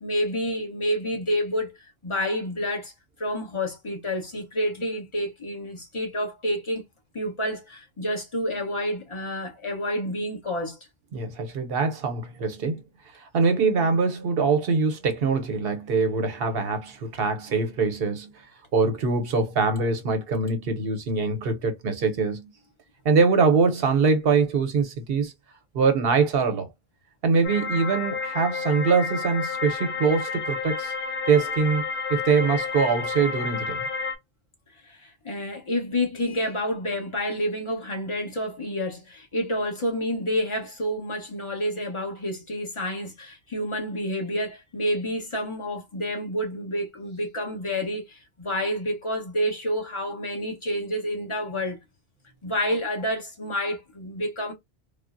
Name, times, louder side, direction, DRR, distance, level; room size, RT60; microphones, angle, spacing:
voice 1, 0.0-1.8 2.0-2.9 3.2-6.8 7.1-10.8 34.8-51.8 52.4-54.5, equal, 30° left, 1.0 m, -29 dB
voice 2, 11.1-12.8 13.1-18.4 18.7-22.5 23.0-25.3 25.7-26.7 27.2-30.9 31.3-31.8 32.1-33.9, right 4 dB, 70° right, 0.9 m, -23 dB
sound 1, 27.4-34.2, left 5 dB, 60° left, 0.8 m, -30 dB
3.6 x 2.0 x 2.4 m
omnidirectional pair, 1.1 m